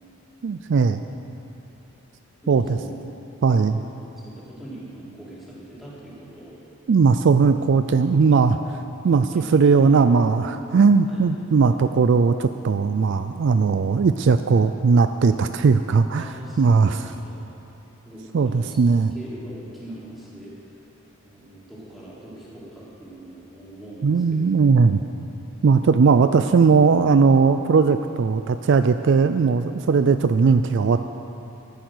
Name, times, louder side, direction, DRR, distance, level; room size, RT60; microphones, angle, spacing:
voice 1, 0.4-1.0 2.5-2.6 3.4-3.8 6.9-8.6 9.0-17.1 18.3-19.1 24.0-25.0 25.6-31.0, right 5 dB, 55° right, 10 dB, 0.4 m, -18 dB
voice 2, 2.4-2.9 3.4-3.8 4.2-6.6 9.3-9.8 11.1-11.3 16.2-17.4 18.0-18.8 19.1-20.5 21.2-24.5, right 1 dB, ahead, -9 dB, 3.4 m, -41 dB
14.0 x 10.5 x 6.2 m, 2.8 s
head